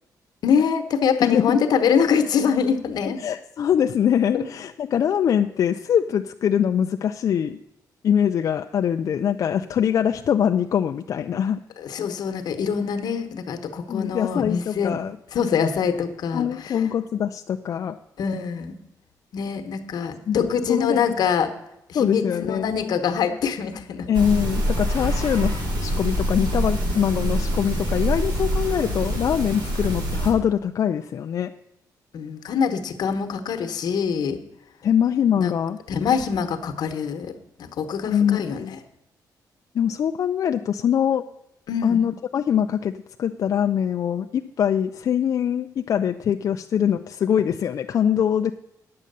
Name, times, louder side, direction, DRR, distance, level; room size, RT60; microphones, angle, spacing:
voice 1, 0.4-3.2 4.3-4.4 11.8-15.0 15.3-16.8 18.2-18.8 19.3-21.5 21.9-24.1 32.1-34.4 35.4-35.5 35.9-38.8 41.7-42.1, left 6 dB, 75° left, 7 dB, 1.1 m, -24 dB
voice 2, 1.2-1.5 3.1-7.6 8.0-11.6 13.9-15.2 16.3-18.0 20.3-20.4 20.7-21.2 21.9-22.7 24.1-25.5 25.8-31.5 34.8-35.8 38.0-38.7 39.7-41.3 41.8-42.9 43.2-48.5, left 8 dB, 55° left, 6 dB, 0.3 m, -23 dB
sound 1, 24.1-30.3, equal, 85° right, 2.9 m, -25 dB
9.6 x 7.5 x 6.7 m, 0.86 s
wide cardioid pair, 160°, 7 cm